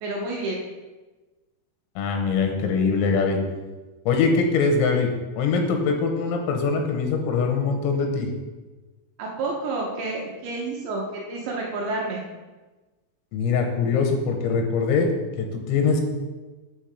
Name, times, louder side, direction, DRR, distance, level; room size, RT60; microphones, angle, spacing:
voice 1, 0.0-0.6 9.2-12.2, right 2 dB, 75° right, -2 dB, 2.7 m, -29 dB
voice 2, 2.0-3.4 4.1-5.1 5.4-8.3 13.3-15.1 15.4-16.0, left 5 dB, 90° left, 3 dB, 3.6 m, -22 dB
8.2 x 3.5 x 6.4 m, 1.2 s
omnidirectional pair, 6.0 m